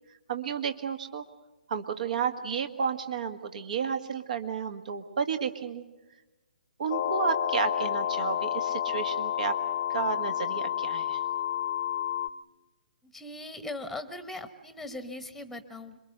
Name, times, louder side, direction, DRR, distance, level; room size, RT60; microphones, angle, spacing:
voice 1, 0.3-1.2 1.7-5.8 6.8-9.6 9.9-11.2, right 6 dB, 50° right, 8 dB, 1.8 m, -32 dB
sound 1, 6.9-12.3, left 10 dB, 35° left, 1.0 m, -30 dB
voice 2, 13.0-16.0, left 2 dB, ahead, 10 dB, 1.3 m, -40 dB
26.5 x 23.0 x 6.7 m, 1.1 s
figure-of-eight pair, 135°, 5 cm